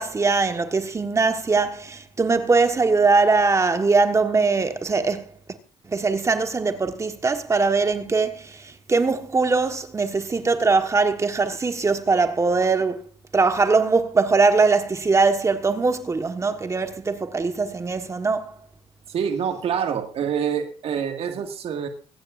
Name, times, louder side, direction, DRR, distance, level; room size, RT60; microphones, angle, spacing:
voice 1, 0.0-5.3 5.9-13.0 13.3-18.5, right 4 dB, 25° right, 1.3 m, -21 dB
voice 2, 19.1-21.9, right 7 dB, 55° right, 1.8 m, -26 dB
24.5 x 9.6 x 2.5 m
supercardioid pair, 80°, 12 cm